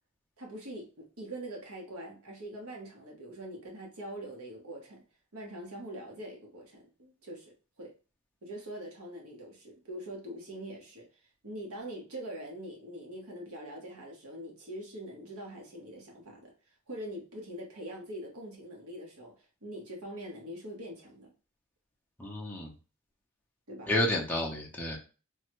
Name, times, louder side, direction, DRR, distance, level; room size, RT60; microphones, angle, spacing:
voice 1, 0.4-5.0 5.3-7.5 7.8-7.9 8.4-11.0 11.4-16.5 16.9-19.3 19.6-21.3 23.7-23.9, right 1 dB, 70° right, 0 dB, 1.1 m, -43 dB
voice 2, 22.2-22.7 23.9-25.0, left 1 dB, 5° left, -2 dB, 0.5 m, -30 dB
3.2 x 2.1 x 3.0 m, 0.34 s
head